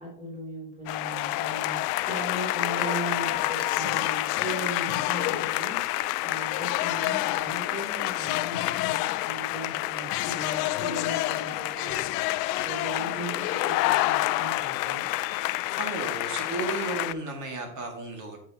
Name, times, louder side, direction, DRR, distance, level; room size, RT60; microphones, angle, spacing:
voice 1, 0.0-1.8 2.0-5.8 6.2-15.0, right 1 dB, 15° right, -3 dB, 3.3 m, -38 dB
sound 1, 0.9-17.1, left 18 dB, 75° left, 0.6 m, -28 dB
voice 2, 15.8-18.4, right 3 dB, 40° right, 2 dB, 2.4 m, -34 dB
8.6 x 6.6 x 3.1 m, 0.68 s
supercardioid pair, 130°, 48 cm